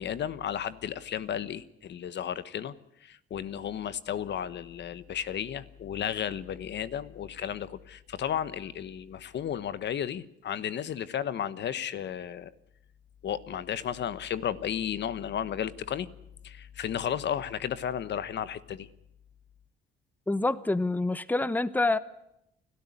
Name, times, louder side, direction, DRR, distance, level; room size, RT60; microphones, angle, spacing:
voice 1, 0.0-2.7 3.0-12.5 13.2-16.1 16.4-18.9, left 9 dB, 65° left, 15 dB, 1.2 m, -33 dB
voice 2, 20.3-22.0, left 2 dB, 10° left, 16 dB, 1.0 m, -27 dB
30.0 x 13.0 x 9.9 m, 0.81 s
cardioid pair, 90°, 20 cm